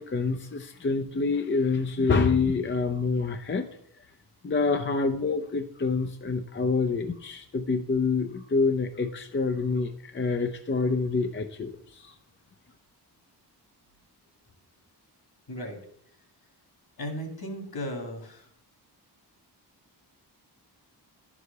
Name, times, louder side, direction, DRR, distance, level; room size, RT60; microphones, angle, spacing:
voice 1, 0.0-3.7 4.4-12.1, left 4 dB, 30° left, 6 dB, 0.6 m, -27 dB
voice 2, 15.5-15.8 17.0-18.5, equal, 60° left, 4 dB, 2.3 m, -36 dB
11.0 x 4.9 x 6.6 m, 0.68 s
wide cardioid pair, 115°, 41 cm